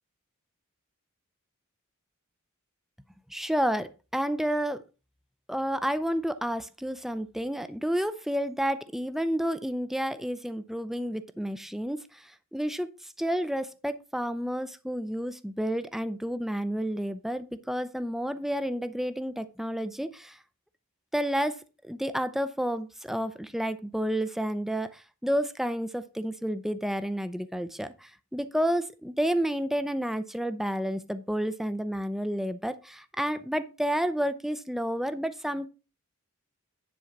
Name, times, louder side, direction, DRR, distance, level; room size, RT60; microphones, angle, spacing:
voice 1, 3.3-4.8 5.5-12.9 13.2-20.4 21.1-35.7, equal, ahead, 12 dB, 0.5 m, -30 dB
10.5 x 3.9 x 5.8 m, 0.32 s
head